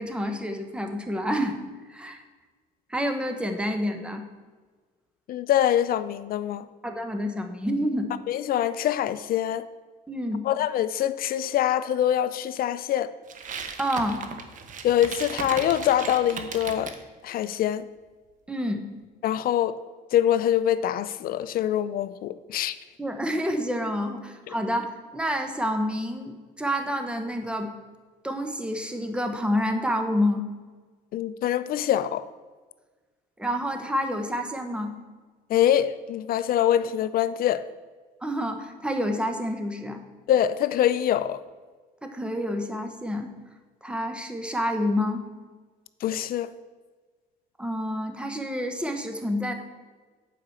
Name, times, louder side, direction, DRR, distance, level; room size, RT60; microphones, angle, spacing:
voice 1, 0.0-1.6 1.9-2.2 2.9-4.2 6.8-8.1 10.1-10.4 13.8-14.3 18.5-18.8 23.0-27.7 28.2-30.4 33.4-34.9 38.2-40.0 42.0-43.3 43.8-45.3 47.6-49.5, equal, 5° right, 6 dB, 1.1 m, -28 dB
voice 2, 5.3-6.7 8.3-9.6 10.4-13.1 14.8-16.9 17.2-17.9 19.2-19.8 20.1-22.8 31.1-32.3 35.5-37.6 40.3-41.4 46.0-46.5, left 11 dB, 60° left, 14 dB, 0.5 m, -24 dB
sound 1, 13.3-17.0, right 6 dB, 50° right, 1.0 m, -36 dB
8.6 x 5.0 x 7.1 m, 1.4 s
cardioid pair, 110°, 17 cm